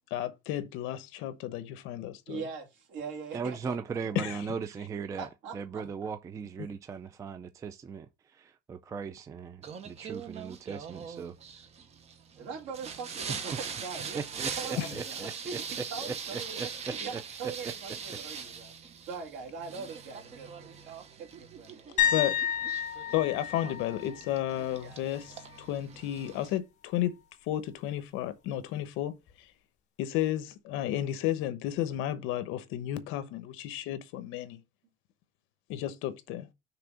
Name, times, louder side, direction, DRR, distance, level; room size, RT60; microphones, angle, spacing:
voice 1, 0.1-2.4 4.1-4.4 6.6-6.7 14.8-14.9 22.1-22.4 23.1-25.3 25.6-27.1 27.5-29.2 30.0-34.6 35.7-36.5, left 12 dB, 75° left, 0.9 m, -32 dB
voice 2, 2.3-4.2 5.2-5.6 12.4-14.2 14.6-16.7 17.0-18.7 19.0-20.9 21.2-22.2 24.1-24.2 24.5-25.5, right 5 dB, 65° right, 2.8 m, -42 dB
voice 3, 3.3-5.3 5.5-11.4 14.1-15.3 16.1-16.7 17.1-17.5 18.3-18.4, right 5 dB, 15° right, 0.3 m, -38 dB
Singing, 9.6-26.6, right 6 dB, 30° right, 0.9 m, -42 dB
sound 1, 22.0-25.7 26.0-26.4 29.3-29.4, left 9 dB, 35° left, 1.6 m, -32 dB
6.0 x 3.5 x 5.8 m
cardioid pair, 170°, 21 cm